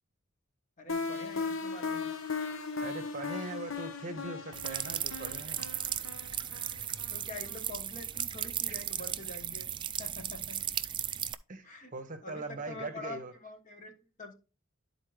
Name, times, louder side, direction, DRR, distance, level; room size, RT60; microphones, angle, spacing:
voice 1, 0.8-2.1 7.1-9.7 10.0-10.6 11.6-11.9 12.2-13.9 14.2-14.3, left 2 dB, 35° left, 1.3 m, -45 dB
sound 1, 0.9-7.7, left 4 dB, 70° left, 0.9 m, -38 dB
voice 2, 2.8-5.7 8.7-8.9 11.5-11.6 11.9-13.4, right 3 dB, 40° right, 0.9 m, -41 dB
sound 2, 4.5-11.3, right 10 dB, 25° right, 0.3 m, -36 dB
11.5 x 4.2 x 3.3 m
head